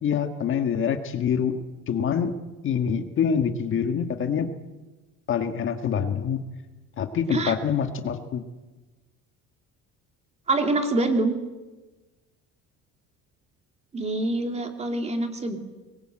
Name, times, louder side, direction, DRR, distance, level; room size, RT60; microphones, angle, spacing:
voice 1, 0.0-1.6 1.9-2.3 2.6-4.5 5.3-6.4 7.0-8.4, left 7 dB, 40° left, 7 dB, 1.6 m, -25 dB
voice 2, 10.5-11.3 13.9-15.6, right 2 dB, 20° right, 5 dB, 2.5 m, -25 dB
24.5 x 22.0 x 9.0 m, 1.2 s
cardioid pair, 180°, 33 cm